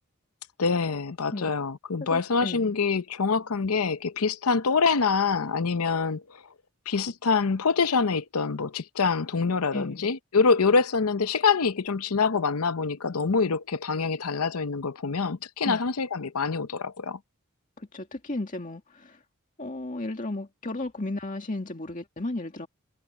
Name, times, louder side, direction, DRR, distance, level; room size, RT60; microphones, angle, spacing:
voice 1, 0.6-6.4 6.9-17.2, left 5 dB, 80° left, 0.8 m, -25 dB
voice 2, 2.1-2.7 9.7-10.1 15.6-15.8 17.8-19.2 19.6-22.7, left 2 dB, 35° left, 2.1 m, -34 dB
head